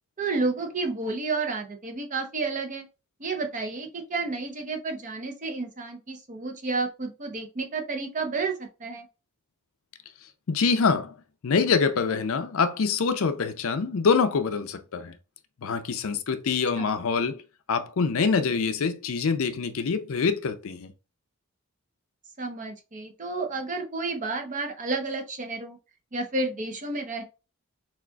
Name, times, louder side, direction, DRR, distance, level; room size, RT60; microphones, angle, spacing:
voice 1, 0.2-2.8 3.2-9.1 16.8-16.9 22.4-25.8 26.1-27.2, right 3 dB, 35° right, 0.7 m, -31 dB
voice 2, 10.5-11.1 11.4-15.1 15.6-17.4 17.7-20.9, left 5 dB, 65° left, 0.5 m, -25 dB
6.2 x 2.5 x 2.3 m
head